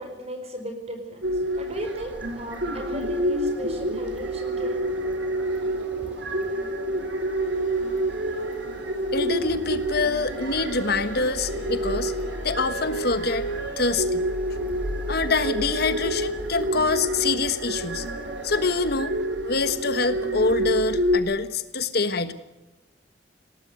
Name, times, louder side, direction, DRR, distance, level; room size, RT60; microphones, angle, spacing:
voice 1, 0.0-5.2 6.0-6.3, right 1 dB, 35° right, 5 dB, 5.0 m, -36 dB
sound 1, 1.2-21.2, right 1 dB, 75° right, 3.1 m, -28 dB
sound 2, 1.7-18.9, right 1 dB, 10° right, 3.6 m, -47 dB
sound 3, 7.4-13.7, right 2 dB, 80° left, 5.8 m, -39 dB
voice 2, 9.1-12.1 12.4-14.2 15.1-18.0 18.4-19.2 19.4-22.3, left 3 dB, 60° left, 11 dB, 1.4 m, -25 dB
20.5 x 18.5 x 8.0 m, 1.0 s
head